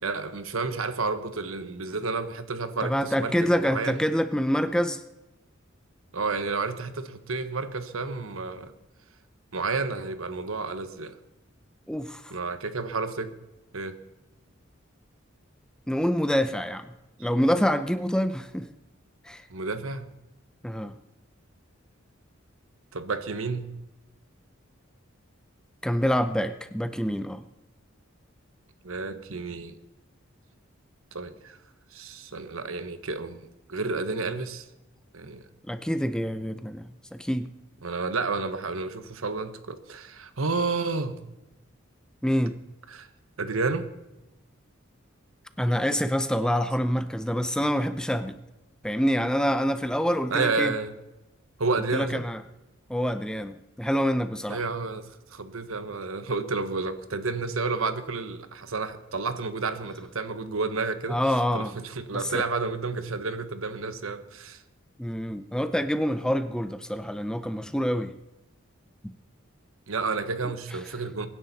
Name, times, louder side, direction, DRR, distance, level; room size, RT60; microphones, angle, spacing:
voice 1, 0.0-4.0 6.1-8.7 9.5-11.2 12.3-13.4 13.7-14.0 19.5-20.1 22.9-23.7 28.8-29.8 31.1-31.6 31.9-34.7 35.1-35.4 37.8-41.2 42.9-43.1 43.4-43.9 50.3-51.0 51.6-52.2 54.5-64.6 69.9-71.3, right 3 dB, 80° right, 11 dB, 1.2 m, -31 dB
voice 2, 2.8-5.0 11.9-12.3 15.9-16.9 17.2-18.7 19.3-19.4 20.6-20.9 25.8-27.4 35.7-37.5 42.2-42.6 45.6-48.4 48.8-50.7 51.9-52.4 52.9-54.6 61.1-61.7 62.1-62.4 65.0-68.1 69.0-69.1, equal, 5° left, 11 dB, 0.5 m, -26 dB
23.5 x 10.5 x 4.2 m, 0.99 s
head